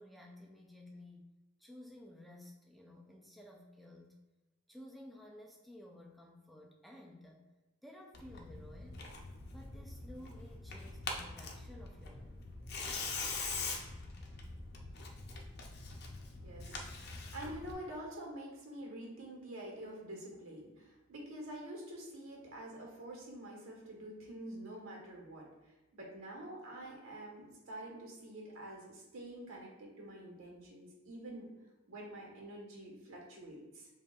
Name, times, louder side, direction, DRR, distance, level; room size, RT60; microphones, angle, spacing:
voice 1, 0.0-1.3 1.6-4.1 4.7-7.5 7.8-9.1 9.5-12.4, left 1 dB, ahead, 0 dB, 0.3 m, -54 dB
Tearing, 8.1-17.7, left 3 dB, 50° left, 0.6 m, -43 dB
voice 2, 16.4-16.9 17.3-31.5 31.9-33.9, right 1 dB, 85° right, -1 dB, 1.3 m, -47 dB
7.3 x 2.6 x 2.3 m, 1.1 s
head